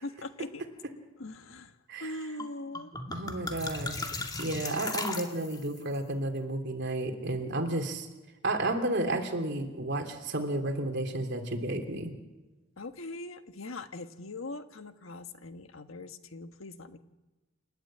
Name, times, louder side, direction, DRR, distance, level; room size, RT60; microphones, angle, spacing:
voice 1, 0.0-0.7 1.2-2.9 12.8-17.0, left 2 dB, 80° left, 8 dB, 1.5 m, -41 dB
sound 1, 2.4-2.5 2.7-5.8, left 3 dB, 20° left, 2.3 m, -37 dB
voice 2, 3.1-8.1 8.4-12.1, right 2 dB, 60° right, 4 dB, 3.2 m, -32 dB
28.5 x 12.5 x 8.9 m, 1.1 s
head